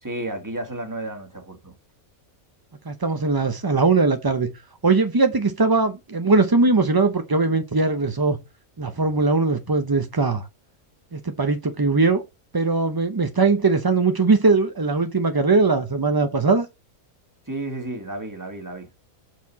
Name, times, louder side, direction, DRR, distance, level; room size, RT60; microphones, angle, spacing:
voice 1, 0.0-1.7 17.5-19.1, right 2 dB, 15° right, 1.4 m, -32 dB
voice 2, 2.9-4.5 4.8-8.4 8.8-10.5 11.1-12.2 12.5-16.7, right 3 dB, 35° right, 0.3 m, -20 dB
7.9 x 4.6 x 4.1 m
omnidirectional pair, 1.5 m